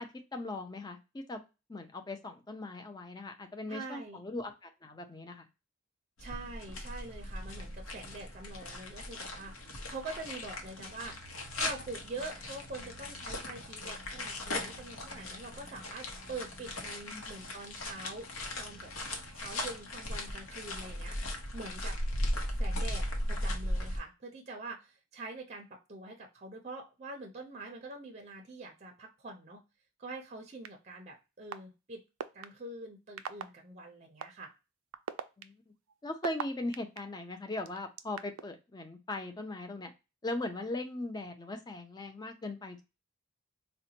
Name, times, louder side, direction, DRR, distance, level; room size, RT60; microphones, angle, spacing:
voice 1, 0.0-1.4 1.7-5.5 17.1-17.2 35.4-35.7 36.0-39.9 40.2-42.8, left 2 dB, 20° left, 6 dB, 0.4 m, -39 dB
voice 2, 3.7-4.2 6.2-11.2 11.5-18.3 18.6-18.9 19.3-21.2 21.5-22.0 22.6-29.6 30.0-32.0 32.3-34.5, right 2 dB, 35° right, 2 dB, 0.5 m, -45 dB
sound 1, 6.2-24.0, left 1 dB, 80° left, 0.8 m, -38 dB
sound 2, 30.6-30.7 31.5-31.6 32.2-32.5 33.2-33.4 34.2-34.3 34.9-37.0 37.7-38.4, right 8 dB, 90° right, 0.4 m, -37 dB
3.8 x 2.1 x 2.7 m, 0.27 s
head